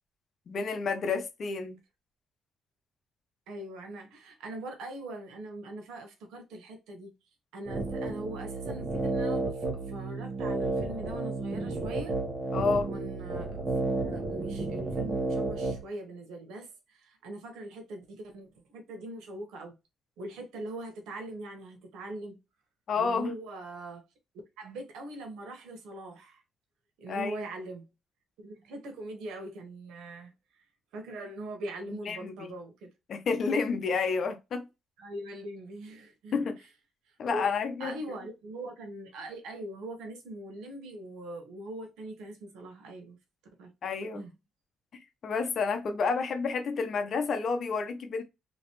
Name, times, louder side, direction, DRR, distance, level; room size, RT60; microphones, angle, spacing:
voice 1, 0.5-1.8 12.5-12.9 22.9-23.3 27.1-27.3 32.1-32.5 33.1-34.6 36.3-36.6 37.2-37.9 43.8-44.2 45.2-48.2, left 5 dB, 55° left, 0.7 m, -30 dB
voice 2, 3.5-7.1 7.5-12.2 12.9-19.7 20.2-22.4 22.9-24.0 24.6-26.4 27.0-27.9 28.4-30.6 30.9-32.9 35.0-36.6 37.1-37.5 37.8-43.2 43.6-43.7 44.1-44.3, right 1 dB, 85° right, 1.1 m, -42 dB
sound 1, 7.7-15.8, right 3 dB, 40° right, 1.2 m, -32 dB
3.1 x 3.0 x 3.0 m
cardioid pair, 90°, 0 cm